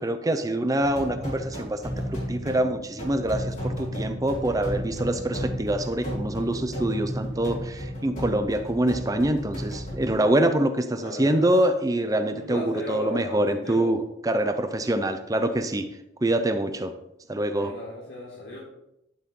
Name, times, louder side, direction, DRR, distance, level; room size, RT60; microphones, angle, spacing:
voice 1, 0.0-14.0 14.2-15.9 16.2-16.9 17.3-17.7, right 1 dB, 20° right, 8 dB, 0.6 m, -25 dB
sound 1, 0.8-10.2, equal, 40° left, 4.4 m, -33 dB
voice 2, 11.0-11.7 12.3-13.9 17.5-18.6, left 1 dB, 85° left, -8 dB, 3.7 m, -36 dB
12.0 x 7.4 x 3.8 m, 0.84 s
head